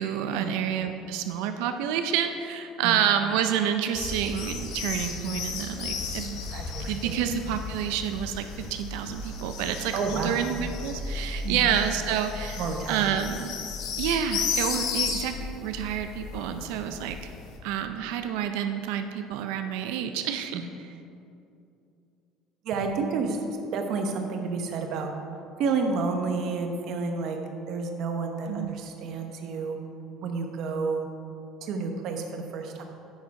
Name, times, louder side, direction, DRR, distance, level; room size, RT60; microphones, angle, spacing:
voice 1, 0.0-6.4 6.9-12.6 12.9-13.6 14.0-17.3 17.6-20.7 28.5-28.7, right 9 dB, 90° right, 7 dB, 0.5 m, -29 dB
sound 1, 3.9-17.6, left 5 dB, 60° left, 1.1 m, -34 dB
voice 2, 6.5-7.2 9.9-10.4 11.4-11.7 12.6-13.2 16.5-16.7 20.5-20.6 22.6-25.1 25.6-27.4 27.7-29.8 30.2-31.1 31.6-32.8, right 4 dB, 50° right, 4 dB, 0.9 m, -30 dB
9.4 x 6.4 x 4.8 m, 2.6 s
cardioid pair, 170°, 0 cm